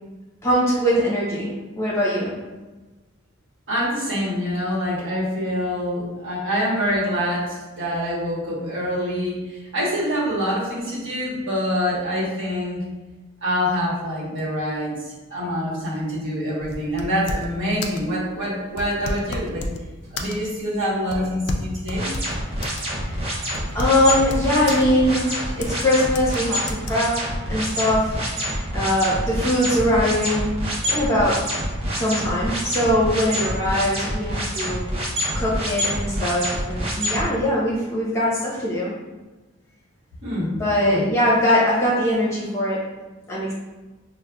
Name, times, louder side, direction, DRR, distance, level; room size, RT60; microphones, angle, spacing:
voice 1, 0.4-2.3 22.9-23.4 23.7-31.4 31.9-34.9 35.3-38.9 40.5-42.8 43.3-43.5, left 1 dB, 15° left, -7 dB, 0.8 m, -22 dB
voice 2, 3.7-9.4 9.7-12.8 13.4-14.9 15.3-19.6 20.1-22.1 40.2-40.5 40.8-41.1, equal, 65° right, -6 dB, 1.2 m, -25 dB
sound 1, 16.6-17.6 17.8-18.1 18.7-19.8 20.2-20.6 21.1-22.9 23.1-23.2 23.5-24.8 25.6-25.9 26.2-26.4 26.7-26.9, left 1 dB, 50° left, 0.3 m, -30 dB
sound 2, 21.9-37.2, equal, 30° right, 0.6 m, -27 dB
5.3 x 2.1 x 2.3 m, 1.2 s
head